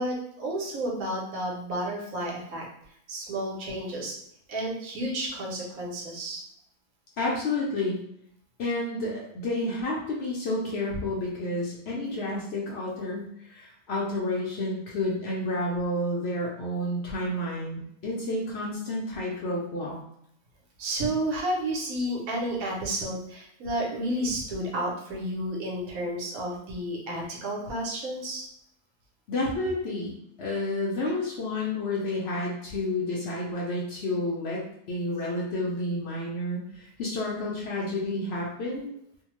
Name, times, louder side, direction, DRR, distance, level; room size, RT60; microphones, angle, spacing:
voice 1, 0.0-2.7 3.1-4.1 4.5-6.4 20.8-28.4 31.0-31.1, right 1 dB, 65° right, -2 dB, 1.0 m, -31 dB
voice 2, 7.2-8.0 8.6-20.0 29.3-34.6 34.9-38.9, left 1 dB, 90° left, -4 dB, 0.5 m, -30 dB
2.7 x 2.1 x 2.9 m, 0.71 s
omnidirectional pair, 1.8 m